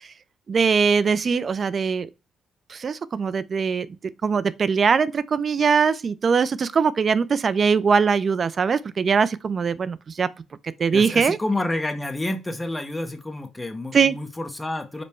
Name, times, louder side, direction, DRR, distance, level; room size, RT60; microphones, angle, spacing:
voice 1, 0.5-2.1 2.7-3.9 4.2-10.3 10.8-11.4 13.9-14.2, right 5 dB, 45° right, 0.3 m, -21 dB
voice 2, 10.9-15.0, left 1 dB, 15° left, 0.7 m, -29 dB
5.2 x 2.1 x 4.2 m
cardioid pair, 90°, 0 cm